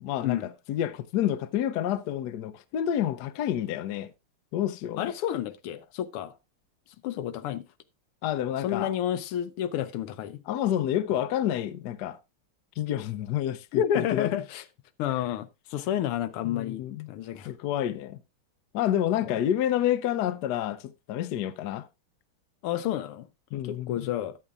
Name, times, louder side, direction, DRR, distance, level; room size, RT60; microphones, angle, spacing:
voice 1, 0.0-4.1 4.5-5.1 8.2-8.9 10.5-12.2 12.8-14.3 16.4-17.1 17.4-18.2 18.7-21.9 23.5-24.1, left 11 dB, 70° left, 1.0 m, -29 dB
voice 2, 5.0-6.3 7.0-7.7 8.6-10.4 13.7-14.6 15.0-17.5 19.2-19.4 22.6-23.3 23.5-24.4, left 10 dB, 85° left, 1.7 m, -30 dB
13.5 x 8.6 x 2.4 m
omnidirectional pair, 2.4 m